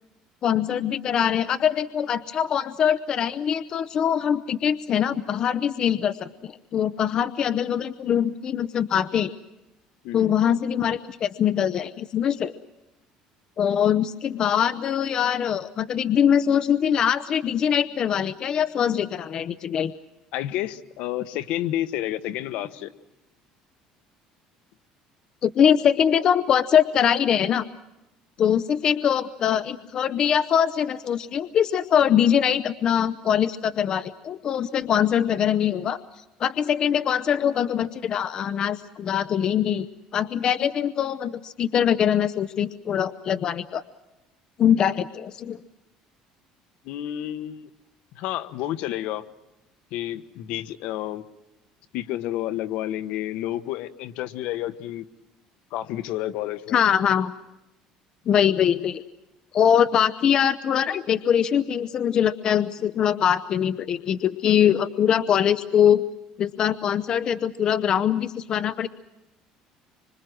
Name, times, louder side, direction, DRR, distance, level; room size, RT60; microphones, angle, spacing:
voice 1, 0.4-9.3 10.1-12.5 13.6-19.9 25.4-27.6 28.4-36.0 36.4-39.9 40.1-43.8 44.6-45.6 56.7-57.3 58.3-59.0 59.5-66.0 66.4-68.9, left 9 dB, 40° left, 13 dB, 0.8 m, -22 dB
voice 2, 10.0-10.4 20.3-22.9 46.8-47.7 48.1-49.2 49.9-51.2 51.9-55.0 55.7-56.8, left 13 dB, 70° left, 12 dB, 1.4 m, -30 dB
26.0 x 25.5 x 6.2 m, 0.92 s
cardioid pair, 150°, 2 cm